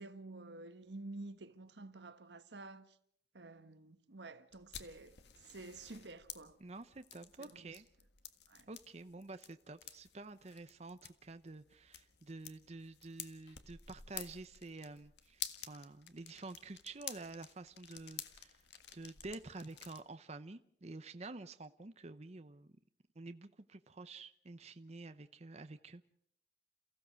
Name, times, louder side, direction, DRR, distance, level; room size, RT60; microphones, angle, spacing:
voice 1, 0.0-3.0 3.3-6.6 7.4-7.8 8.5-8.7, right 2 dB, 85° right, 1.3 m, -50 dB
sound 1, 4.5-20.0, left 10 dB, 75° left, 1.7 m, -51 dB
voice 2, 6.6-7.9 8.7-18.6 18.9-22.7 23.2-26.0, right 3 dB, 40° right, 0.8 m, -49 dB
29.0 x 16.0 x 6.4 m
head